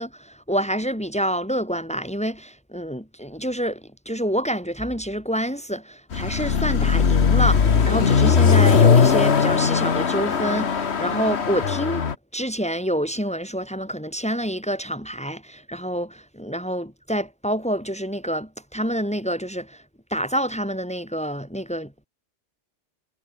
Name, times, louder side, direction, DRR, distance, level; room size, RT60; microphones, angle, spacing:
voice 1, 0.0-12.1 12.3-19.8 20.1-22.1, equal, 5° left, 5.7 m, -27 dB
Car passing by / Accelerating revving vroom, 6.1-12.1, left 6 dB, 65° left, 1.6 m, -19 dB
omnidirectional pair, 1.2 m